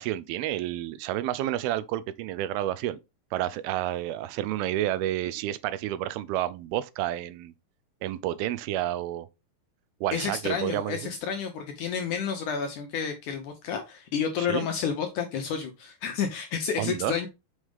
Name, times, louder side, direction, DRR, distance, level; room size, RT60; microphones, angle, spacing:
voice 1, 0.0-3.0 3.3-7.5 8.0-9.3 10.0-11.0 14.4-14.7 16.8-17.1, right 13 dB, 80° right, 2.4 m, -30 dB
voice 2, 10.1-17.3, left 7 dB, 75° left, 1.9 m, -30 dB
6.5 x 6.3 x 3.5 m
omnidirectional pair, 4.5 m